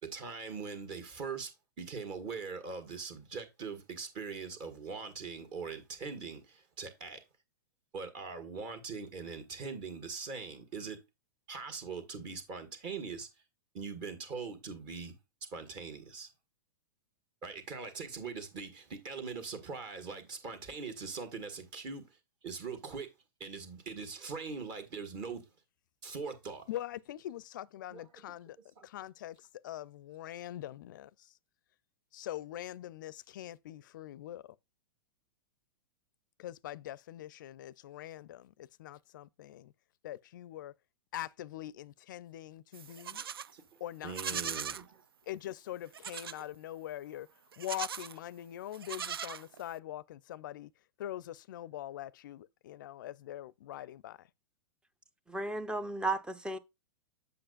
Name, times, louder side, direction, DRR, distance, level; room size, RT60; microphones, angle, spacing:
voice 1, 0.0-1.5 1.8-7.2 7.9-11.0 11.5-13.3 13.7-15.2 15.5-16.3 17.4-22.1 22.4-23.1 23.4-25.5 26.0-26.8 27.9-28.1 28.8-28.9 43.1-43.6 44.0-45.0, right 5 dB, 40° right, 1.7 m, -42 dB
voice 2, 26.7-28.6 28.8-31.3 32.1-34.5 36.4-39.7 40.0-40.7 41.1-43.2 43.8-44.6 45.3-47.3 47.6-50.7 51.0-54.3, left 13 dB, 60° left, 0.4 m, -43 dB
Livestock farm animals working animals, 42.7-43.5 44.1-44.8 45.9-46.4 47.5-48.2 48.7-49.8, right 8 dB, 75° right, 0.4 m, -39 dB
voice 3, 55.3-56.6, right 2 dB, 5° right, 0.5 m, -34 dB
7.7 x 6.9 x 2.4 m
figure-of-eight pair, 100°, 12 cm